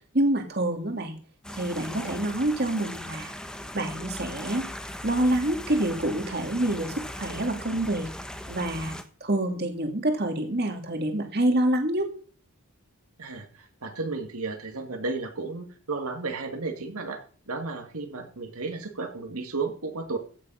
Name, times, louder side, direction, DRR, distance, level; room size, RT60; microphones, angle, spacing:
voice 1, 0.1-1.2 1.5-3.3 3.7-4.7 5.0-8.1 8.5-12.1, right 1 dB, 45° right, 4 dB, 2.1 m, -27 dB
sound 1, 1.4-9.0, left 1 dB, 5° left, 1.0 m, -39 dB
voice 2, 13.2-17.2 17.5-20.2, right 3 dB, 80° right, 4 dB, 2.2 m, -33 dB
15.5 x 7.5 x 5.6 m, 0.43 s
head